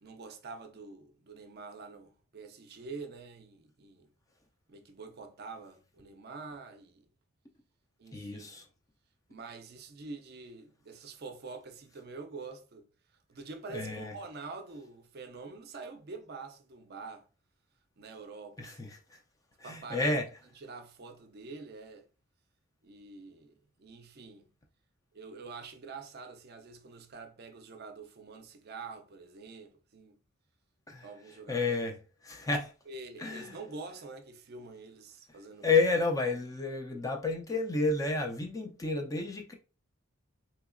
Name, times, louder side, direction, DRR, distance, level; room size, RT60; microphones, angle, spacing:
voice 1, 0.0-4.1 4.7-7.1 8.0-8.5 9.3-12.9 13.3-17.3 18.0-18.9 19.6-20.1 20.6-22.1 22.8-24.5 25.1-30.2 31.0-31.8 32.9-35.8, right 4 dB, 45° right, 0.5 m, -46 dB
voice 2, 8.1-8.6 13.7-14.1 18.6-19.2 19.6-20.3 30.9-31.1 31.5-32.7 33.2-33.6 35.6-39.5, left 3 dB, 15° left, 0.3 m, -31 dB
3.8 x 2.7 x 2.5 m
head